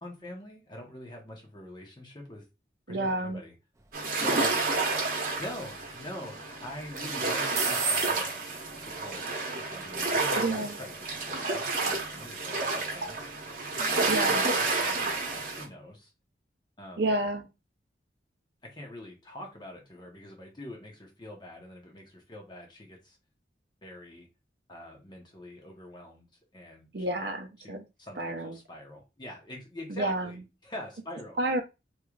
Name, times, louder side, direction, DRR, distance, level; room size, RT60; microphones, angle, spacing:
voice 1, 0.0-2.4 2.9-3.5 4.2-4.5 5.4-9.3 9.6-13.2 13.8-16.1 16.8-17.1 18.6-23.2 23.8-24.3 24.7-26.3 26.5-27.3 27.6-31.4, left 1 dB, 25° left, 1.0 m, -44 dB
voice 2, 2.9-3.4 10.4-10.8 14.1-14.4 17.0-17.5 26.9-27.8 28.2-28.6 29.9-30.3 31.4-31.6, right 2 dB, 65° right, 0.7 m, -30 dB
sound 1, 3.7-15.6, right 4 dB, 15° right, 0.4 m, -42 dB
sound 2, 3.9-15.6, right 3 dB, 50° right, 1.0 m, -30 dB
3.2 x 3.1 x 2.4 m
head